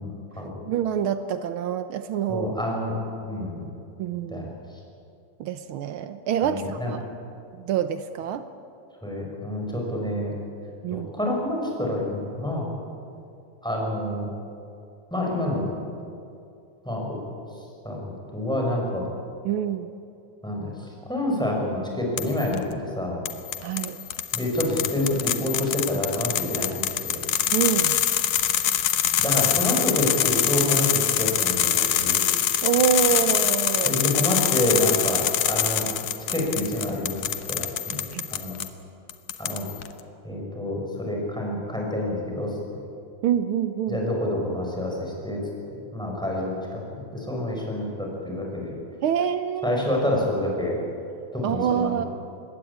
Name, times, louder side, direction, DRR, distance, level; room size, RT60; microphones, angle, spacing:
voice 1, 0.0-0.5 2.3-2.9 3.2-3.6 4.3-4.5 6.4-6.9 9.0-10.4 10.9-12.7 13.6-14.3 15.1-15.7 16.8-17.1 17.8-19.1 20.4-20.7 21.1-23.2 24.3-27.2 29.2-32.2 33.8-35.9 36.3-37.2 37.5-38.0 38.3-38.5 39.4-39.6 40.2-42.6 43.9-45.4 45.9-48.7 49.6-50.8 51.3-52.1, left 1 dB, ahead, -1 dB, 6.2 m, -27 dB
voice 2, 0.6-2.5 4.0-4.5 5.4-7.0 7.6-8.4 10.8-11.1 19.4-19.9 23.6-24.0 27.5-28.0 32.6-34.0 38.1-38.3 43.2-44.0 49.0-49.8 51.4-52.1, right 9 dB, 90° right, 10 dB, 1.1 m, -26 dB
sound 1, 22.2-22.6 23.3-38.7 39.1-39.9, left 11 dB, 75° left, 2.4 m, -25 dB
25.5 x 21.0 x 8.7 m, 2.6 s
omnidirectional pair, 3.5 m